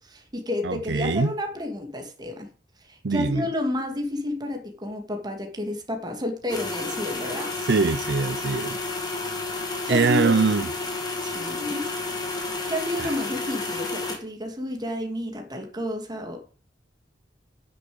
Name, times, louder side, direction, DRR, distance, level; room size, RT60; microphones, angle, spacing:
voice 1, 0.1-2.5 2.9-7.5 9.9-10.3 11.2-11.8 12.7-16.4, left 1 dB, 25° right, 2.5 m, -30 dB
voice 2, 0.6-1.3 3.0-3.5 7.7-8.8 9.9-10.7 13.0-13.1, right 4 dB, 65° right, 0.6 m, -23 dB
sound 1, 6.5-14.2, left 3 dB, 25° left, 2.7 m, -31 dB
9.9 x 7.0 x 7.0 m
head